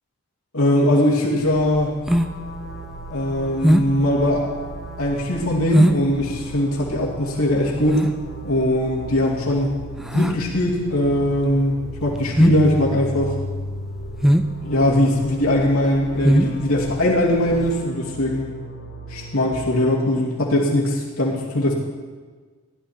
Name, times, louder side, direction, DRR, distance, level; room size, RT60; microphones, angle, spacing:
voice 1, 0.5-1.9 3.1-4.4 5.0-8.0 8.4-9.8 10.1-11.7 12.0-13.4 14.6-18.5 19.1-21.7, left 1 dB, 80° left, -3 dB, 2.5 m, -20 dB
sound 1, 1.5-17.8, equal, ahead, 0.4 m, -23 dB
sound 2, 2.1-19.6, right 1 dB, 50° left, 1.3 m, -36 dB
16.0 x 11.5 x 4.4 m, 1.4 s
head